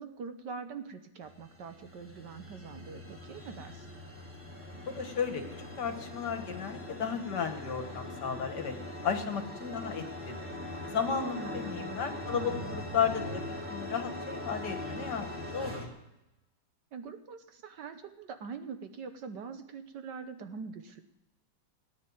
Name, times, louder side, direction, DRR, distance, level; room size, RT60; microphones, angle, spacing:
voice 1, 0.0-3.9 11.4-12.1 12.3-12.8 16.9-21.0, right 5 dB, 65° right, 8 dB, 1.5 m, -43 dB
sound 1, 1.2-15.9, left 1 dB, 5° right, 2.5 m, -41 dB
voice 2, 4.9-8.7 9.0-10.4 10.9-13.4 13.7-15.8, left 6 dB, 60° left, 7 dB, 1.8 m, -34 dB
17.5 x 9.8 x 7.1 m, 0.96 s
omnidirectional pair, 2.2 m